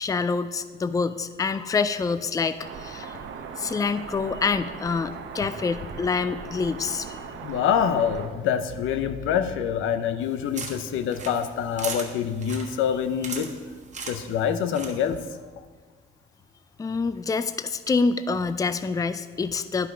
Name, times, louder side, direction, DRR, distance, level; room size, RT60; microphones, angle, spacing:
voice 1, 0.0-3.2 3.6-7.2 16.8-19.9, left 4 dB, 15° left, 12 dB, 0.4 m, -26 dB
sound 1, 2.6-8.3, right 6 dB, 75° right, 0.8 m, -39 dB
voice 2, 7.4-13.5 14.1-15.2, left 8 dB, 85° left, 10 dB, 0.6 m, -26 dB
sound 2, 10.2-15.3, right 4 dB, 35° right, 1.3 m, -39 dB
10.0 x 5.7 x 5.0 m, 1.5 s
cardioid pair, 90°, 20 cm